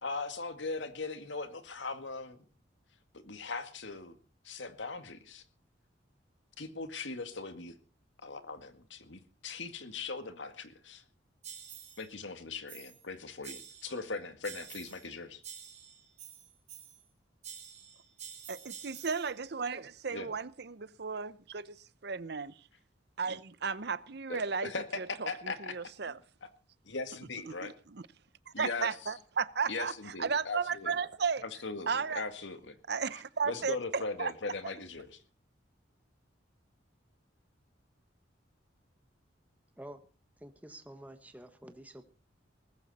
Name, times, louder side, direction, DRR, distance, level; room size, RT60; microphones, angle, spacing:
voice 1, 0.0-2.4 3.1-4.2 4.4-5.4 6.6-7.8 8.2-11.0 12.0-15.4 20.1-20.3 24.3-26.5 26.8-27.7 28.5-29.1 29.7-31.0 31.4-32.8 33.1-35.2, left 3 dB, 80° left, 2.0 m, -40 dB
sound 1, 11.4-12.1 12.7-13.1 13.4-14.1 14.4-15.1 15.4-17.1 17.4-19.3, right 8 dB, 40° right, 4.9 m, -48 dB
voice 2, 18.5-22.5 23.2-24.7 25.0-25.3 25.7-26.2 27.6-28.0 28.6-29.9 30.2-31.4 31.9-32.2 32.9-34.3, right 5 dB, 60° right, 0.7 m, -34 dB
voice 3, 40.4-42.0, right 1 dB, 10° right, 1.3 m, -49 dB
19.5 x 14.5 x 4.2 m
head